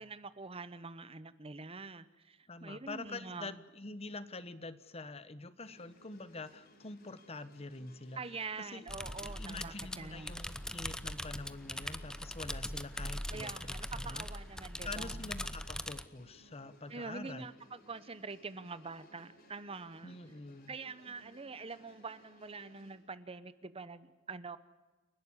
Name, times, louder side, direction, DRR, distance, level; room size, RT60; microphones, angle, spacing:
voice 1, 0.0-3.5 8.2-10.4 13.3-15.2 16.9-20.1 20.7-24.6, right 4 dB, 30° right, 14 dB, 0.8 m, -45 dB
voice 2, 2.5-8.9 9.2-14.3 14.8-17.5 20.0-20.8, left 3 dB, 30° left, 14 dB, 1.1 m, -46 dB
sound 1, 5.6-23.0, equal, 55° left, 6.8 m, -62 dB
sound 2, 8.9-16.0, left 1 dB, 5° left, 0.8 m, -41 dB
29.0 x 12.0 x 9.9 m, 1.2 s
head